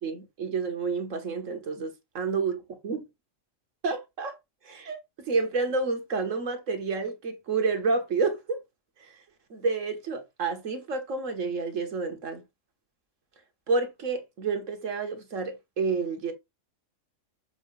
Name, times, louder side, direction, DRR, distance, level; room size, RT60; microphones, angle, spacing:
voice 1, 0.0-3.1 3.8-4.4 4.6-8.6 9.0-9.2 9.5-12.4 13.7-16.3, right 4 dB, 80° right, 1.7 m, -29 dB
7.1 x 2.7 x 5.3 m
omnidirectional pair, 1.3 m